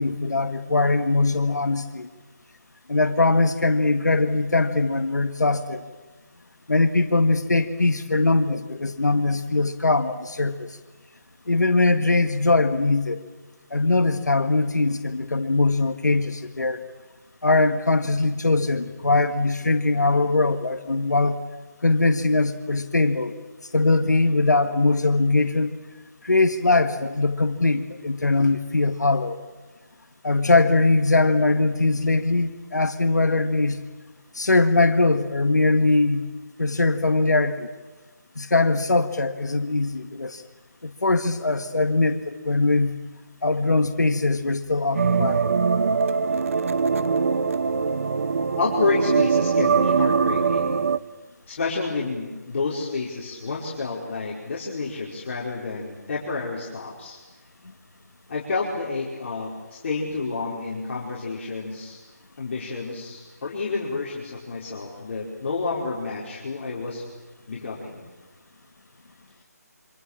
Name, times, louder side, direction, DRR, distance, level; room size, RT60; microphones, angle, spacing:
voice 1, 0.0-2.1 2.9-5.8 6.7-10.7 11.5-13.2 13.7-16.8 17.4-21.4 21.8-23.3 23.7-25.7 26.2-29.4 30.2-33.8 34.4-36.3 36.6-37.7 38.4-40.4 40.8-43.0 43.4-45.4, left 3 dB, 90° left, 8 dB, 1.8 m, -21 dB
sound 1, 44.9-51.0, right 5 dB, 50° right, 0.9 m, -22 dB
voice 2, 48.6-50.8 51.5-57.2 58.3-62.0 62.4-67.0 67.5-68.0, left 4 dB, 45° left, -5 dB, 5.0 m, -29 dB
27.0 x 25.5 x 7.5 m, 1.2 s
figure-of-eight pair, 160°, 9 cm